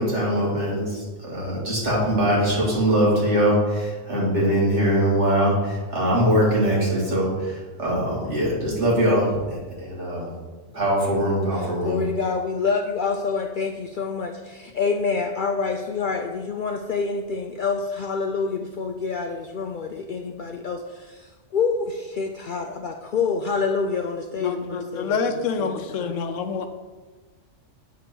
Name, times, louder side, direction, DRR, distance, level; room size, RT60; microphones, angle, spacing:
voice 1, 0.0-10.3 10.7-12.0, equal, 65° right, -4 dB, 2.5 m, -22 dB
voice 2, 11.6-26.2, left 5 dB, 60° left, 4 dB, 0.5 m, -27 dB
voice 3, 24.4-26.7, left 5 dB, 85° left, 7 dB, 1.1 m, -27 dB
8.1 x 3.7 x 6.1 m, 1.3 s
omnidirectional pair, 1.3 m